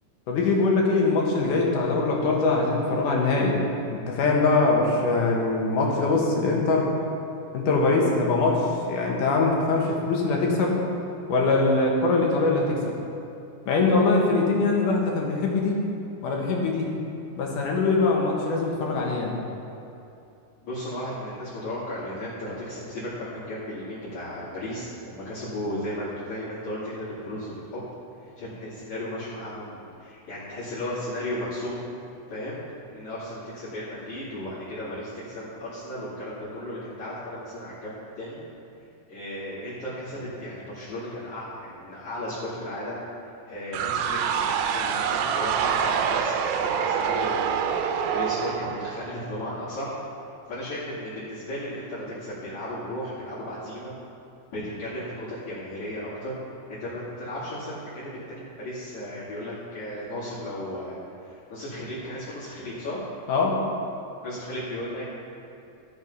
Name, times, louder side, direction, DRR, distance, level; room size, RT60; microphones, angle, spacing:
voice 1, 0.3-3.6 3.9-6.9 7.5-10.8 11.3-12.9 13.7-15.8 16.2-16.9 17.4-19.4 63.3-63.6, left 3 dB, 80° left, -1 dB, 3.0 m, -22 dB
voice 2, 20.6-27.8 28.4-31.8 32.3-32.6 32.9-38.4 39.1-43.0 43.5-50.0 50.5-53.9 54.5-56.4 56.8-61.0 61.2-63.0 64.2-65.0, left 1 dB, 65° left, -12 dB, 3.8 m, -35 dB
sound 1, 43.7-49.5, right 7 dB, 80° right, 2.0 m, -26 dB
14.0 x 6.4 x 5.5 m, 2.8 s
omnidirectional pair, 3.6 m